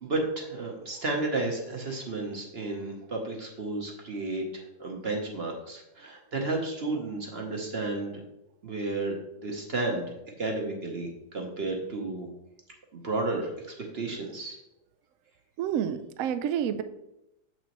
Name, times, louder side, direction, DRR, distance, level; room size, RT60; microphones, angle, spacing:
voice 1, 0.0-8.2 8.6-9.1 9.4-10.0 10.4-11.1 11.3-12.3 12.9-14.6, right 2 dB, 45° right, 1 dB, 0.9 m, -32 dB
voice 2, 15.6-16.8, right 9 dB, 85° right, 11 dB, 0.7 m, -29 dB
7.3 x 6.0 x 3.0 m, 0.88 s
omnidirectional pair, 2.0 m